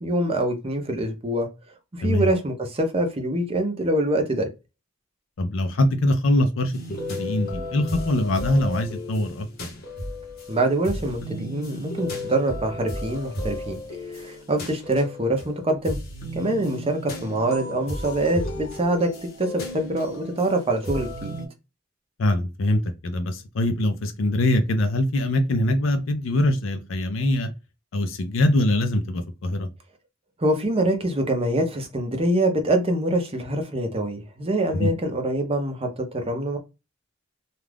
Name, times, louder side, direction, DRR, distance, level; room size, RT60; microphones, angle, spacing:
voice 1, 0.0-1.5 1.9-4.5 10.5-13.8 14.1-16.0 16.3-19.1 19.4-21.3 30.4-36.6, right 1 dB, 30° right, 0.6 m, -24 dB
voice 2, 5.4-9.5 22.2-27.5 27.9-29.7 34.8-34.9, left 1 dB, 75° left, 0.5 m, -23 dB
sound 1, 6.7-21.5, left 1 dB, 50° left, 1.0 m, -34 dB
2.4 x 2.3 x 3.3 m
head